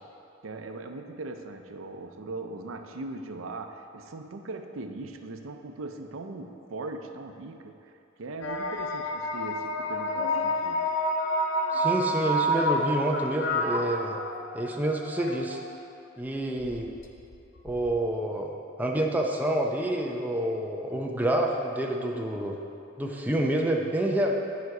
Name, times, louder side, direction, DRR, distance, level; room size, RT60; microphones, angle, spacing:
voice 1, 0.4-7.9 8.2-10.9, right 2 dB, 90° right, 6 dB, 0.6 m, -39 dB
sound 1, 8.4-15.8 16.6-18.1, equal, 75° left, 0.7 m, -29 dB
voice 2, 11.7-14.2 14.5-15.6 16.2-16.9 17.6-18.5 18.8-22.6 23.0-24.3, right 1 dB, 10° right, 0 dB, 0.6 m, -28 dB
11.0 x 5.2 x 4.7 m, 2.7 s
head